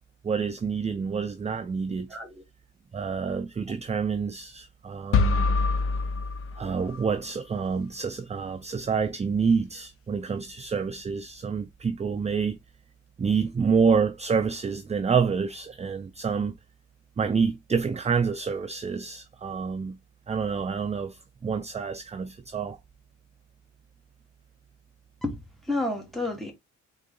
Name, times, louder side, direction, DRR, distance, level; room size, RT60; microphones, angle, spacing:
voice 1, 0.2-2.1 2.9-5.4 6.6-12.6 13.2-16.5 17.2-20.0 20.3-22.8, right 5 dB, 25° right, 0.4 m, -27 dB
voice 2, 2.1-2.4 25.2-26.5, left 2 dB, ahead, 1.7 m, -31 dB
sound 1, 5.1-7.2, left 4 dB, 50° left, 0.6 m, -25 dB
3.8 x 3.6 x 3.7 m
wide cardioid pair, 135°, 30 cm